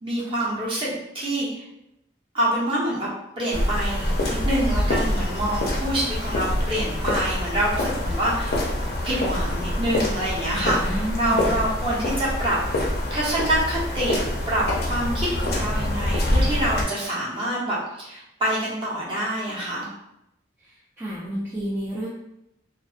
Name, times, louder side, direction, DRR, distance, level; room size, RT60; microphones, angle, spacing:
voice 1, 0.0-1.6 2.3-3.1 3.4-8.6 9.0-12.8 13.1-19.9, right 1 dB, 30° right, -7 dB, 0.8 m, -26 dB
sound 1, 3.5-16.8, left 1 dB, 55° left, 0.5 m, -25 dB
voice 2, 10.5-11.5 20.6-22.1, equal, 10° right, -8 dB, 0.3 m, -30 dB
2.3 x 2.2 x 2.4 m, 0.84 s
head